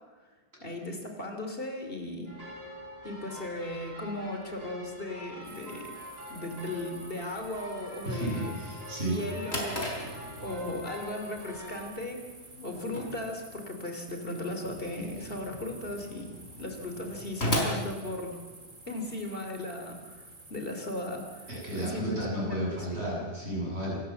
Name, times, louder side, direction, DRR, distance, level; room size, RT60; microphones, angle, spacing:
voice 1, 0.6-2.3 3.0-5.9 6.3-8.5 9.1-12.3 12.6-16.3 16.6-18.4 18.9-20.2 20.5-23.0, left 1 dB, 60° left, 4 dB, 3.2 m, -37 dB
sound 1, 2.3-11.8, equal, 65° right, 5.8 m, -45 dB
sound 2, 5.4-21.9, right 2 dB, 50° right, 2.7 m, -51 dB
voice 2, 8.0-9.2 21.5-24.0, right 1 dB, 85° right, -4 dB, 8.1 m, -33 dB
Drawer open or close, 9.1-18.8, equal, 90° left, 4.6 m, -37 dB
26.5 x 13.0 x 7.7 m, 1.3 s
omnidirectional pair, 1.1 m